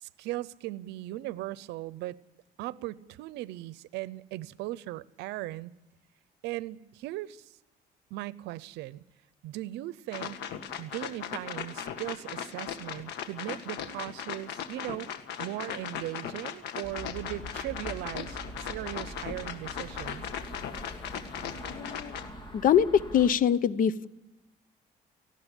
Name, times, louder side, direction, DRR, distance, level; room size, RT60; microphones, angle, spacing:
voice 1, 0.0-2.2 2.6-5.7 6.4-7.5 8.1-9.0 9.4-10.4 10.8-15.1 15.4-20.3, right 16 dB, 90° right, 0.7 m, -38 dB
sound 1, 10.1-22.3, left 8 dB, 80° left, 1.8 m, -38 dB
sound 2, 16.8-23.3, equal, 30° left, 3.4 m, -43 dB
voice 2, 21.7-22.2 22.5-24.1, left 8 dB, 55° left, 0.9 m, -24 dB
18.5 x 15.5 x 9.9 m
cardioid pair, 110°, 17 cm